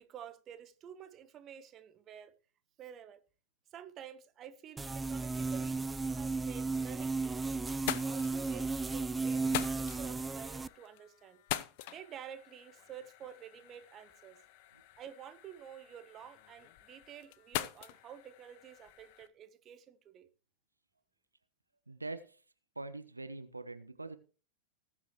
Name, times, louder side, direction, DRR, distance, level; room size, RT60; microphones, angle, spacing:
voice 1, 0.0-2.3 2.8-3.2 3.7-5.8 6.1-11.4 11.9-14.4 15.0-20.3, right 9 dB, 30° right, 1.2 m, -50 dB
sound 1, 4.8-10.7, right 3 dB, 10° right, 0.5 m, -34 dB
sound 2, 7.2-7.3 7.7-19.3, left 14 dB, 50° left, 0.8 m, -44 dB
voice 2, 21.9-22.4 22.8-24.2, right 2 dB, 80° right, 0.9 m, -43 dB
19.5 x 7.3 x 3.1 m
figure-of-eight pair, 90°, 0 cm